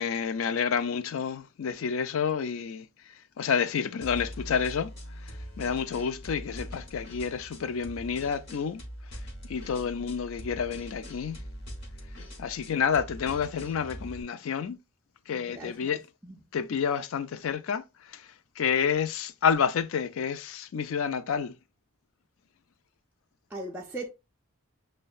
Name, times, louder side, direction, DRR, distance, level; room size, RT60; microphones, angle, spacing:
voice 1, 0.0-2.9 3.4-4.9 5.6-8.8 9.5-11.4 12.4-14.8 15.3-16.0 16.5-17.8 18.1-18.2 18.6-21.5, left 6 dB, 70° left, 0.4 m, -29 dB
sound 1, 4.0-14.2, equal, 50° left, 0.8 m, -42 dB
voice 2, 15.3-16.4 23.5-24.1, right 1 dB, 10° right, 0.3 m, -39 dB
6.3 x 2.1 x 2.3 m
head